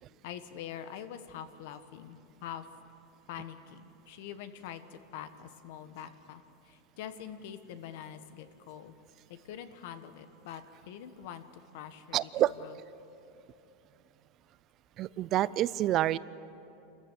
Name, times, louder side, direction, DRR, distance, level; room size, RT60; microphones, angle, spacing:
voice 1, 0.2-2.6 3.3-9.0 9.3-11.4 11.7-12.3 12.6-12.8, left 9 dB, 65° left, 10 dB, 1.4 m, -44 dB
voice 2, 12.1-12.5 15.0-16.2, right 14 dB, 35° right, 18 dB, 0.5 m, -27 dB
27.5 x 14.5 x 8.5 m, 2.8 s
supercardioid pair, 150°, 0 cm